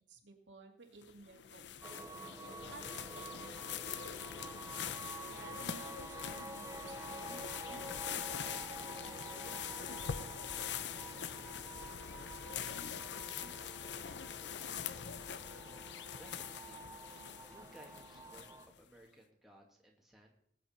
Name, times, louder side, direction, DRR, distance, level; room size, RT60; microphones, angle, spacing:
voice 1, 0.0-1.8 2.4-4.4 5.3-7.8 8.1-11.5, right 3 dB, 85° right, 1 dB, 2.4 m, -57 dB
sound 1, 1.0-18.8, left 8 dB, 70° left, 0.6 m, -44 dB
sound 2, 1.8-18.7, right 2 dB, 15° right, 0.5 m, -50 dB
voice 2, 16.1-16.8 17.5-18.5 18.7-20.4, right 1 dB, ahead, -1 dB, 2.0 m, -59 dB
19.5 x 8.6 x 4.4 m, 0.65 s
head